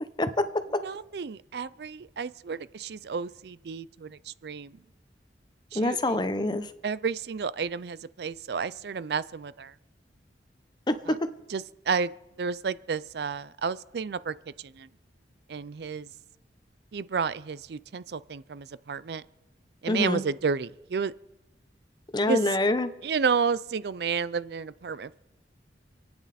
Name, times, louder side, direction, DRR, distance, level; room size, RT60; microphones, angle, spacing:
voice 1, 0.8-4.8 5.7-6.2 6.8-9.7 11.1-11.2 11.5-12.1 12.4-14.9 15.5-16.1 16.9-19.2 19.8-21.1 22.3-22.4 23.0-25.2, right 5 dB, 65° right, 17 dB, 0.4 m, -31 dB
voice 2, 5.7-6.7 10.9-11.2 19.9-20.2 22.1-22.9, left 1 dB, 25° left, 11 dB, 0.8 m, -25 dB
28.0 x 9.6 x 4.2 m, 0.99 s
head